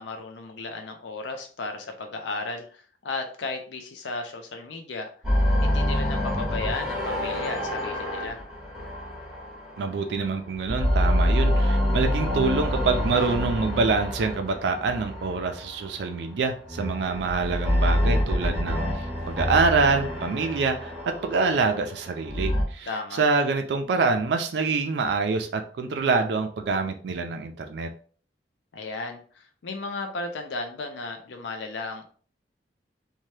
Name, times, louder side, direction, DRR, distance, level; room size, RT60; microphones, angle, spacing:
voice 1, 0.0-5.1 5.6-8.4 22.9-23.2 28.7-32.0, left 3 dB, 85° left, 4 dB, 0.5 m, -35 dB
sound 1, 5.2-10.2 10.6-15.9 16.6-22.6, equal, ahead, 0.9 m, -26 dB
voice 2, 9.8-27.9, right 4 dB, 70° right, 5 dB, 0.4 m, -26 dB
2.8 x 2.2 x 3.1 m, 0.44 s
head